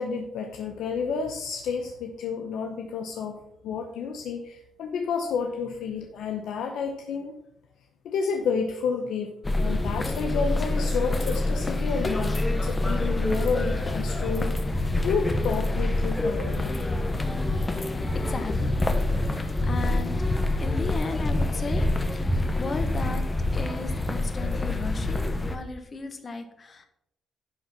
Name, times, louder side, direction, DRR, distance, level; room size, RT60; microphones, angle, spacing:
voice 1, 0.0-7.4 8.0-9.3 9.6-16.8, left 5 dB, 80° left, 3 dB, 0.8 m, -30 dB
sound 1, 9.4-25.6, left 2 dB, 20° left, 1.0 m, -26 dB
voice 2, 18.1-18.6 19.3-20.2 20.6-26.9, left 3 dB, 35° left, 7 dB, 1.3 m, -36 dB
10.5 x 3.8 x 5.7 m, 0.77 s
cardioid pair, 90°, 0 cm